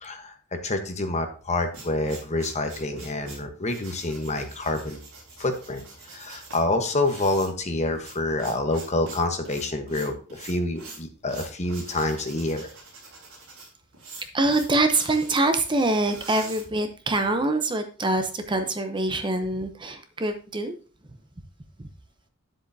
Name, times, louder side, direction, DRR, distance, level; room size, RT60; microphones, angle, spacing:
voice 1, 0.0-5.0 5.4-5.8 6.1-12.7, left 2 dB, 30° left, 6 dB, 1.1 m, -27 dB
sound 1, 1.3-17.3, right 3 dB, 70° right, 3.7 m, -45 dB
voice 2, 14.3-20.8 21.8-21.9, right 2 dB, 20° right, 7 dB, 0.7 m, -24 dB
10.0 x 7.7 x 2.7 m, 0.39 s
head